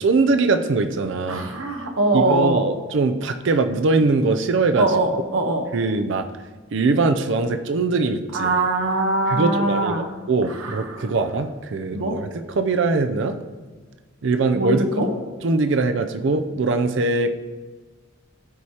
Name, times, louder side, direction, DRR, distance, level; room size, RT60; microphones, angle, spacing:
voice 1, 0.0-1.5 2.1-4.9 5.7-6.3 6.7-8.5 9.3-13.4 14.2-14.8 15.4-17.4, right 3 dB, 65° right, 9 dB, 0.5 m, -21 dB
voice 2, 1.3-2.6 4.8-5.6 8.3-10.1 10.6-11.1 11.9-12.2 14.5-15.1, right 2 dB, 90° right, 3 dB, 1.0 m, -22 dB
13.5 x 4.8 x 2.9 m, 1.4 s
head